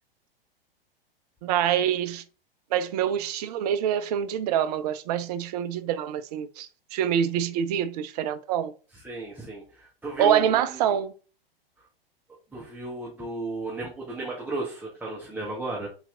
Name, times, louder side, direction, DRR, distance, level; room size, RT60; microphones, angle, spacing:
voice 1, 1.4-2.2 2.7-8.7 10.2-11.1, right 9 dB, 45° right, 0.4 m, -26 dB
voice 2, 9.0-10.9 12.5-15.9, right 2 dB, 5° right, 0.8 m, -34 dB
3.8 x 2.8 x 2.4 m
figure-of-eight pair, 100°, 29 cm